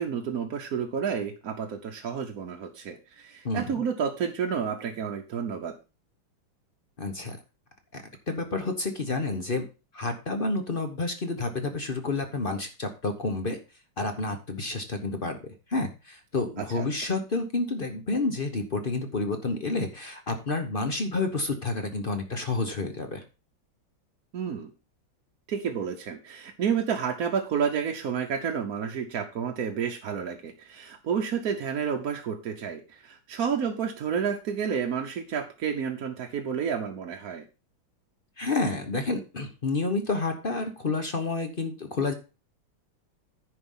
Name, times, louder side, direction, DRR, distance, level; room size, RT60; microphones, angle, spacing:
voice 1, 0.0-5.8 16.6-16.9 24.3-24.7 25.5-37.4, right 7 dB, 55° right, 2 dB, 1.2 m, -30 dB
voice 2, 7.0-7.4 7.9-9.6 9.9-13.6 14.0-23.2 38.4-42.1, left 3 dB, 40° left, 6 dB, 0.9 m, -29 dB
10.0 x 5.2 x 5.5 m, 0.31 s
omnidirectional pair, 2.2 m